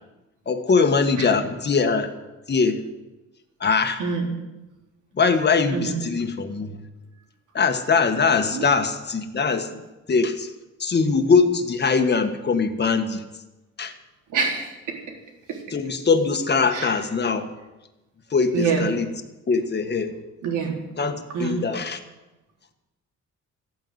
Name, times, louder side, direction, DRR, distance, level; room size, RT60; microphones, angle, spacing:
voice 1, 0.5-2.1 2.5-2.8 3.6-4.0 5.2-6.8 7.5-9.8 10.1-10.5 10.8-13.2 13.8-13.9 15.7-17.5 18.3-19.1 19.5-20.1 21.0-22.0, left 5 dB, 35° left, 7 dB, 1.6 m, -22 dB
voice 2, 4.0-4.3 5.7-6.0 8.5-8.6 14.3-14.7 16.7-16.9 18.5-18.9 20.4-20.8 21.3-21.7, right 5 dB, 85° right, 0 dB, 4.0 m, -25 dB
14.5 x 9.3 x 8.2 m, 1.1 s
cardioid pair, 90°, 30 cm